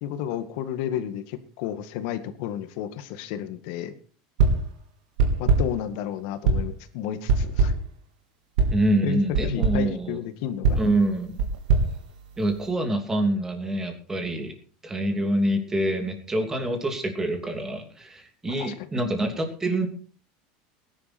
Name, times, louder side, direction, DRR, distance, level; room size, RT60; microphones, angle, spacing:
voice 1, 0.0-3.9 5.4-7.7 9.0-10.8 18.4-18.9, left 10 dB, 60° left, 10 dB, 2.0 m, -32 dB
sound 1, 4.4-4.8 5.2-5.8 6.4-6.8 7.3-7.9 8.6-8.8 9.3-9.9 10.6-12.7, right 3 dB, 90° right, 3.6 m, -23 dB
voice 2, 8.7-10.2 10.8-11.4 12.4-14.6 14.8-19.9, right 1 dB, 10° right, 5 dB, 2.9 m, -26 dB
19.0 x 11.0 x 4.4 m, 0.40 s
supercardioid pair, 155°, 4 cm